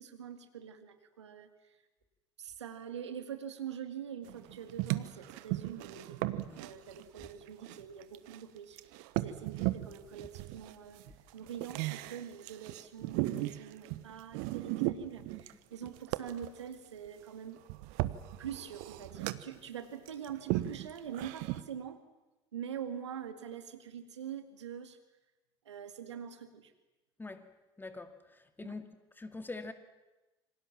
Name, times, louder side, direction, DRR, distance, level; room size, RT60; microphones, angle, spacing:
voice 1, 0.0-1.5 2.4-6.2 6.6-8.8 9.2-11.0 11.3-17.6 18.4-22.0 22.5-25.0 25.7-26.7 28.6-28.8, right 8 dB, 75° right, 2.2 m, -44 dB
sound 1, 4.3-8.4 8.8-16.6 17.6-19.6 20.1-21.6, right 17 dB, 60° right, 1.2 m, -36 dB
voice 2, 27.2-27.5 27.8-28.9 29.2-29.7, left 3 dB, 15° left, 2.3 m, -44 dB
27.5 x 25.0 x 7.3 m
figure-of-eight pair, 65°, 15 cm